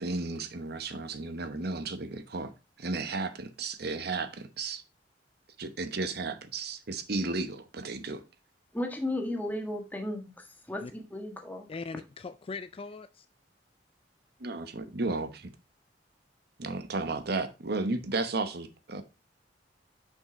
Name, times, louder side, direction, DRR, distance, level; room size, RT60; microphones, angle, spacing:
voice 1, 0.0-2.5 2.8-4.8 5.6-8.2 14.4-15.5 16.6-19.0, right 3 dB, 60° right, 1.0 m, -33 dB
voice 2, 8.7-11.7, left 1 dB, 10° left, 1.5 m, -35 dB
voice 3, 11.7-13.3, left 4 dB, 30° left, 0.4 m, -40 dB
6.4 x 5.6 x 3.9 m
head